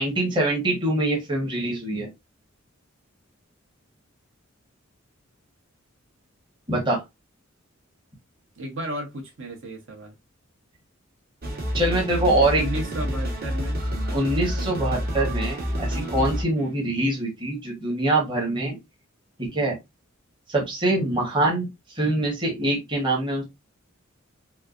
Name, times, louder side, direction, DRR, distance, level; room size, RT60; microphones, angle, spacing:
voice 1, 0.0-2.1 6.7-7.0 11.7-12.6 14.1-18.8 19.4-19.8 20.5-21.7 21.9-23.4, right 1 dB, 25° right, 1.1 m, -24 dB
voice 2, 8.6-10.1 12.6-13.8 16.6-16.8, right 1 dB, 65° right, 1.2 m, -34 dB
sound 1, 11.4-16.4, equal, 45° right, 1.3 m, -28 dB
4.3 x 2.3 x 2.4 m
head